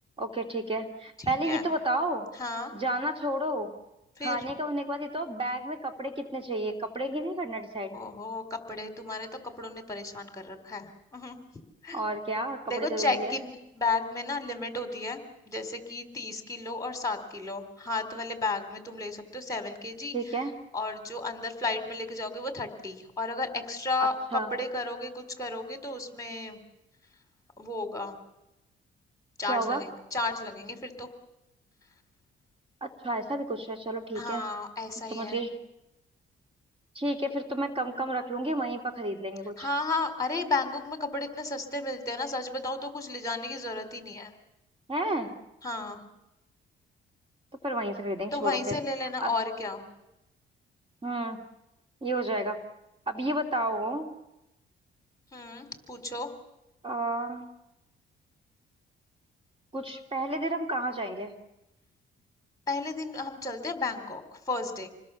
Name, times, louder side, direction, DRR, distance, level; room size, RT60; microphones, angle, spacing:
voice 1, 0.2-2.3 2.7-3.7 4.2-8.0 11.9-13.3 20.1-20.5 24.3-24.5 29.5-29.8 32.8-34.4 35.1-35.5 36.9-39.7 44.9-45.3 47.6-48.8 49.2-49.3 51.0-51.4 52.0-52.6 53.1-54.1 56.8-57.5 59.7-61.3, right 1 dB, 30° right, 4 dB, 2.7 m, -31 dB
voice 2, 1.2-1.6 2.4-2.7 4.2-4.4 7.9-11.5 11.8-12.0 12.7-15.2 15.5-20.1 20.7-26.6 27.6-28.2 29.4-31.1 34.1-35.4 39.6-44.3 45.6-46.0 48.3-49.8 55.3-56.3 62.7-64.9, left 2 dB, 15° left, 7 dB, 3.7 m, -33 dB
27.5 x 20.5 x 7.0 m, 0.91 s
cardioid pair, 90°, 20 cm